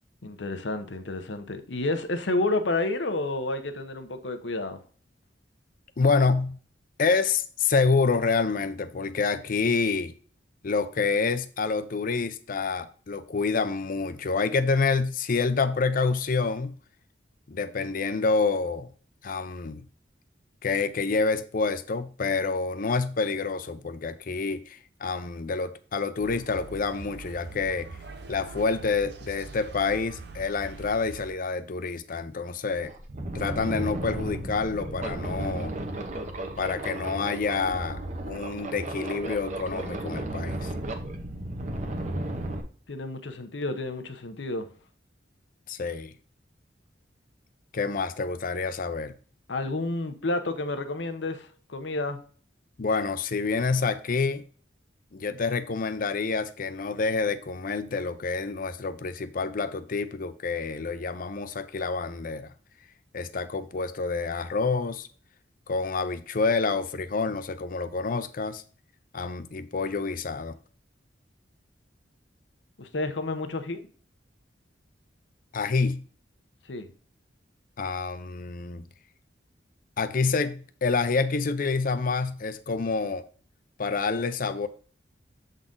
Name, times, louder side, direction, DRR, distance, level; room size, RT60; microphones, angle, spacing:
voice 1, 0.2-4.8 42.9-44.7 49.5-52.2 72.8-73.9 76.7-76.9, left 2 dB, 80° left, 0.9 m, -30 dB
voice 2, 6.0-6.6 7.0-10.1 10.6-16.8 17.5-18.9 19.2-19.8 20.6-27.9 28.3-32.9 33.3-35.7 36.6-38.0 38.3-40.7 45.7-46.1 47.7-49.1 52.8-54.4 55.1-62.5 63.1-65.1 65.7-68.6 69.1-70.6 75.5-76.1 77.8-78.9 80.0-83.2 83.8-84.7, left 4 dB, 50° left, 0.6 m, -27 dB
sound 1, 26.2-31.3, right 3 dB, 65° right, 0.6 m, -43 dB
sound 2, 32.2-32.3 32.7-42.6, right 1 dB, 45° right, 1.0 m, -34 dB
7.4 x 4.0 x 3.8 m
head